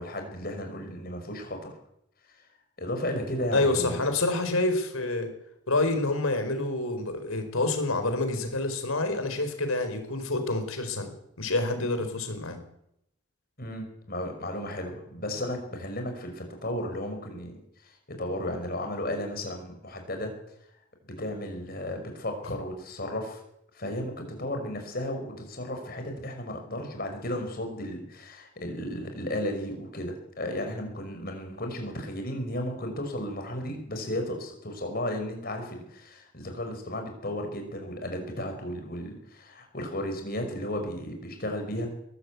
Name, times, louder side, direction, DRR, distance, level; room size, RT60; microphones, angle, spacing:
voice 1, 0.0-1.7 2.3-2.4 2.8-4.0 13.6-20.3 21.1-23.4 23.7-41.9, left 1 dB, 45° left, 5 dB, 5.7 m, -34 dB
voice 2, 3.5-5.3 5.7-11.1 11.4-12.6, left 2 dB, 85° left, 8 dB, 4.6 m, -27 dB
22.0 x 15.0 x 8.4 m, 0.77 s
head